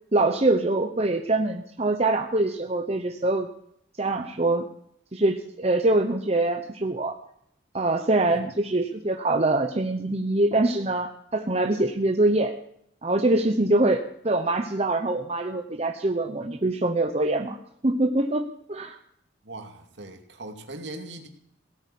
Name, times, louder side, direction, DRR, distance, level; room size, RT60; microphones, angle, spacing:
voice 1, 0.1-3.5 4.0-4.7 5.1-7.2 7.7-12.6 13.0-17.6 17.8-19.0, right 2 dB, 35° right, 5 dB, 0.9 m, -24 dB
voice 2, 19.4-21.3, right 2 dB, 70° right, 5 dB, 2.5 m, -40 dB
17.0 x 8.9 x 8.6 m, 0.70 s
head